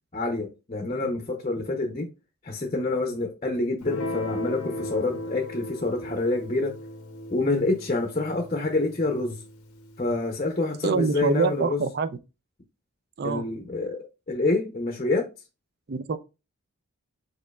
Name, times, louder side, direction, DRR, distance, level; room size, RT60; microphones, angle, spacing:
voice 1, 0.1-2.1 2.4-6.7 7.3-9.4 10.0-11.8 13.2-15.3, left 2 dB, 30° left, 0.6 m, -27 dB
Guitar, 3.8-10.4, left 2 dB, 90° left, 0.7 m, -37 dB
voice 2, 10.8-12.2 13.2-13.5 15.9-16.2, right 4 dB, 45° right, 0.4 m, -25 dB
5.2 x 4.2 x 2.3 m
head